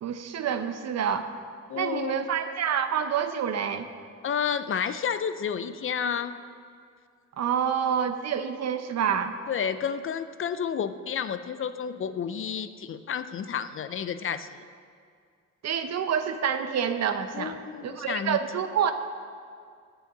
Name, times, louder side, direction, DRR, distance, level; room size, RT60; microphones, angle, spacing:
voice 1, 0.0-1.3 1.8-3.9 7.4-9.3 15.6-18.9, right 8 dB, 60° right, 9 dB, 0.8 m, -28 dB
voice 2, 1.7-2.3 4.2-6.4 9.5-14.6 17.3-18.4, left 7 dB, 45° left, 12 dB, 0.5 m, -31 dB
8.6 x 7.2 x 7.2 m, 2.2 s
cardioid pair, 90°, 30 cm